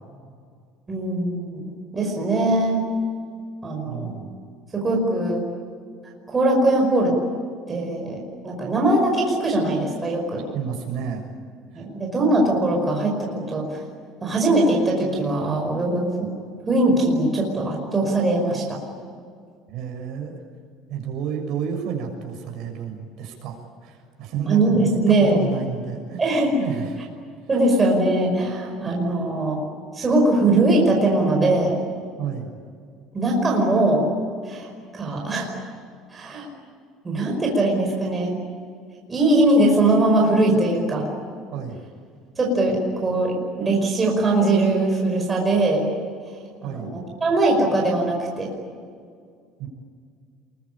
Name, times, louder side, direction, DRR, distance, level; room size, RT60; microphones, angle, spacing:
voice 1, 0.9-2.9 3.6-4.2 4.7-5.4 6.3-7.1 7.7-10.4 11.8-13.8 14.2-16.3 16.7-18.8 24.5-25.4 26.2-26.6 27.5-29.6 29.9-31.8 33.1-34.0 34.4-35.5 36.1-36.5 37.0-38.4 39.1-41.1 42.4-45.9 46.6-48.5, right 2 dB, 15° right, -1 dB, 5.3 m, -21 dB
voice 2, 3.9-4.2 10.5-11.3 11.7-11.8 19.7-20.4 20.9-26.2 26.6-27.0 32.2-32.5 41.5-41.8 46.6-47.0 49.6-49.7, right 7 dB, 50° right, 1 dB, 6.8 m, -31 dB
28.0 x 23.0 x 8.8 m, 2.1 s
cardioid pair, 175°, 0 cm